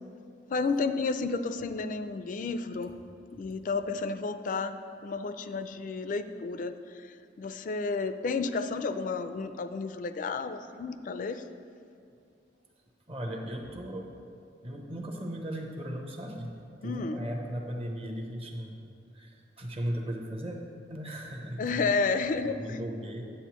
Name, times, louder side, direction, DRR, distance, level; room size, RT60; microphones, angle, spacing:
voice 1, 0.5-2.9 3.3-11.5 16.8-17.2 21.6-22.8, left 4 dB, 50° left, 10 dB, 0.3 m, -31 dB
voice 2, 13.1-14.1 14.6-16.5 16.8-18.8 19.1-20.6 20.9-21.9 22.4-23.2, equal, 35° right, 1 dB, 0.9 m, -37 dB
10.0 x 7.6 x 3.0 m, 2.5 s
head